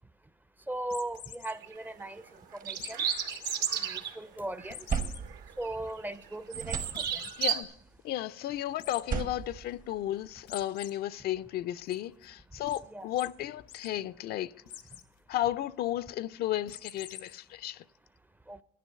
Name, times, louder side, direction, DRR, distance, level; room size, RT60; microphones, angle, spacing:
voice 1, 0.7-2.2 2.5-3.0 3.7-4.9 5.6-7.2 12.9-13.1 18.5-18.6, right 1 dB, 10° right, 0.4 m, -38 dB
sound 1, 0.8-1.5 2.8-3.5 4.0-4.1 4.7-5.2 5.7-5.8 6.1-6.2 6.9-7.4 8.8-9.0 10.5-10.9 11.3-11.9 12.7-12.8 13.2-13.3 13.6-13.9 14.7-15.1 16.7-17.4, left 11 dB, 85° left, 1.0 m, -45 dB
sound 2, 1.5-1.7 2.5-4.1 4.6-4.7 5.2-5.9 6.2-7.6, right 8 dB, 80° right, 1.3 m, -33 dB
sound 3, 1.9-2.0 2.3-4.0 4.4-6.2 6.5-7.6 8.8-10.5, right 6 dB, 50° right, 1.0 m, -38 dB
voice 2, 7.3-7.7 8.0-14.5 15.3-17.8, left 13 dB, 70° left, 0.4 m, -34 dB
10.5 x 10.0 x 5.6 m
cardioid pair, 110°, 17 cm